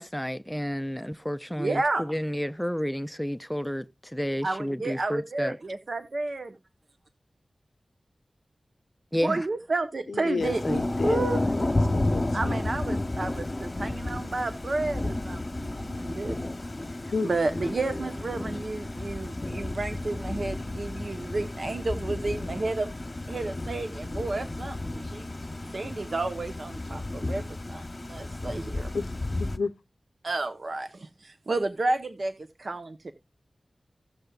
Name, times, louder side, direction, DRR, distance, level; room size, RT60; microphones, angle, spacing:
voice 1, 0.0-5.6 9.1-9.4, equal, 5° left, 0.5 m, -31 dB
voice 2, 1.6-2.0 4.4-6.6 9.2-11.4 12.3-16.4 17.0-22.9 23.3-25.3 25.6-28.9 30.2-33.1, right 2 dB, 65° right, 0.8 m, -31 dB
voice 3, 10.1-12.6 17.1-17.3 28.9-29.1 29.4-29.7, left 4 dB, 90° left, 0.5 m, -31 dB
Thunder / Rain, 10.4-29.6, left 2 dB, 35° left, 1.1 m, -32 dB
16.0 x 6.6 x 2.3 m
wide cardioid pair, 55°, 0 cm